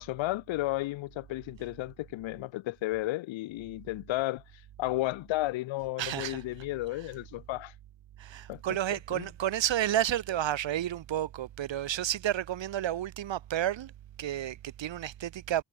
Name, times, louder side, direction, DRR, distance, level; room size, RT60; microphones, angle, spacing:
voice 1, 0.0-4.4 4.8-7.7 8.5-8.6 8.9-9.3, left 18 dB, 85° left, 2.3 m, -33 dB
voice 2, 6.0-6.4 8.2-13.9 14.2-15.6, right 12 dB, 75° right, 3.2 m, -31 dB
hypercardioid pair, 45°, 45 cm